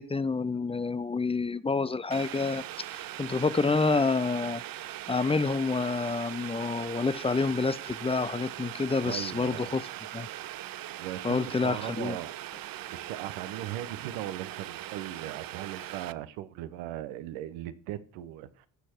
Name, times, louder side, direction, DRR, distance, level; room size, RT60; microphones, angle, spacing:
voice 1, 0.0-2.6 2.9-4.6 5.1-9.8 10.1-10.3 11.2-12.2, left 4 dB, 15° left, 0.5 m, -28 dB
Boiling, 2.1-16.1, right 14 dB, 50° right, 0.6 m, -40 dB
voice 2, 9.0-9.7 11.0-12.3 12.9-18.7, right 13 dB, 75° right, 1.0 m, -38 dB
15.0 x 6.4 x 4.5 m
hypercardioid pair, 50°, 47 cm